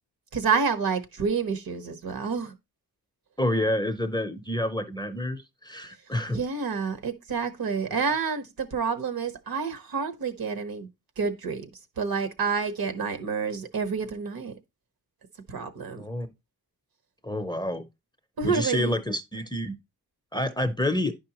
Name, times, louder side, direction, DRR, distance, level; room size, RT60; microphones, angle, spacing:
voice 1, 0.3-2.5 6.3-10.9 11.2-14.5 15.5-16.0 18.4-19.0, right 5 dB, 65° right, 1.2 m, -29 dB
voice 2, 3.4-6.4 16.0-16.3 17.2-17.9 18.4-19.8 20.3-21.1, left 1 dB, 10° left, 0.6 m, -28 dB
10.5 x 5.5 x 2.9 m
wide cardioid pair, 130°, 38 cm